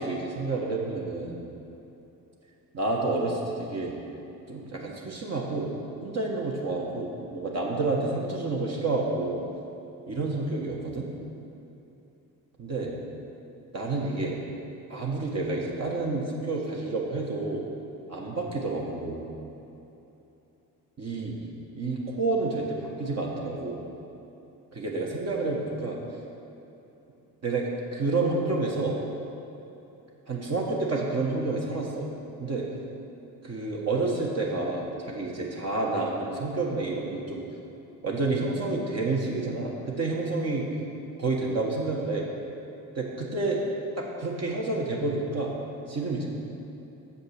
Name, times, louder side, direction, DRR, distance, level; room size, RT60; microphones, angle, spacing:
voice 1, 0.0-1.4 2.7-3.9 4.5-5.7 6.0-9.4 10.1-11.1 12.6-12.9 13.7-14.4 14.9-17.6 18.1-19.2 21.0-21.4 21.7-23.8 24.7-26.0 27.4-29.0 30.3-32.1 32.4-32.6 33.4-37.4 38.0-40.7 41.2-42.3 43.0-43.6 44.0-45.5 45.9-46.3, right 3 dB, 35° right, -2 dB, 1.5 m, -29 dB
7.0 x 5.3 x 6.7 m, 3.0 s
hypercardioid pair, 65°, 46 cm